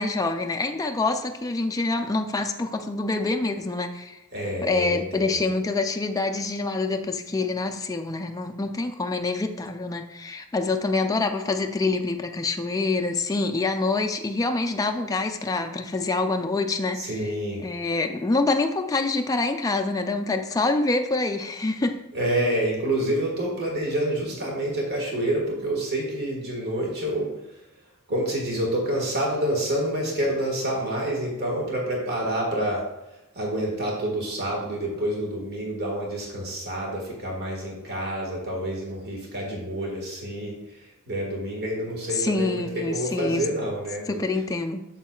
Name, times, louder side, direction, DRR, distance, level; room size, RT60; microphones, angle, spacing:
voice 1, 0.0-4.2 4.6-17.2 17.6-22.0 42.2-43.4 44.1-44.8, left 3 dB, 15° left, 5 dB, 0.4 m, -26 dB
voice 2, 4.3-5.4 16.9-17.6 22.1-27.3 28.1-32.9 33.1-44.2, right 1 dB, 50° right, -2 dB, 1.7 m, -28 dB
7.5 x 7.2 x 2.4 m, 0.94 s
head